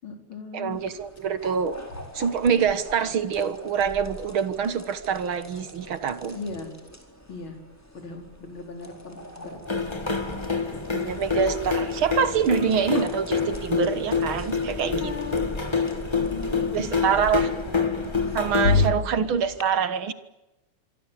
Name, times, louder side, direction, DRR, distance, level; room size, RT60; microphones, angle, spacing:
voice 1, 0.0-0.8 1.9-2.0 6.3-6.7 7.3-7.6 7.9-10.6 10.8-11.1 14.8-15.5 16.3-18.0 18.7-19.1, left 4 dB, 40° left, 4 dB, 5.1 m, -39 dB
voice 2, 0.5-1.8 2.1-6.4 10.9-15.1 16.7-17.5 18.3-20.1, right 7 dB, 55° right, 12 dB, 1.8 m, -25 dB
sound 1, 0.7-19.6, equal, 5° left, 4.2 m, -44 dB
sound 2, 9.7-18.9, left 5 dB, 20° left, 0.7 m, -27 dB
sound 3, 18.6-18.9, left 4 dB, 65° left, 4.5 m, -32 dB
26.0 x 24.0 x 8.4 m, 1.0 s
omnidirectional pair, 3.4 m